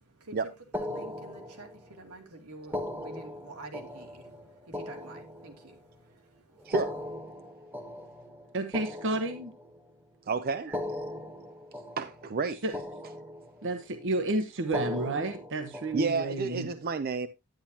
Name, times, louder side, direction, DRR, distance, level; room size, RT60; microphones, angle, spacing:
voice 1, 0.0-6.7, right 2 dB, 90° right, 2.6 m, -48 dB
sound 1, 0.7-2.0 2.6-5.9 6.6-9.9 10.6-12.5 12.7-13.8 14.6-16.4, left 1 dB, 10° right, 1.4 m, -39 dB
voice 2, 6.7-7.0 10.3-11.0 12.0-12.6 15.9-17.3, right 4 dB, 45° right, 0.5 m, -30 dB
voice 3, 8.5-9.5 12.6-12.7 13.6-16.7, right 2 dB, 60° right, 1.0 m, -31 dB
10.5 x 10.0 x 2.8 m
head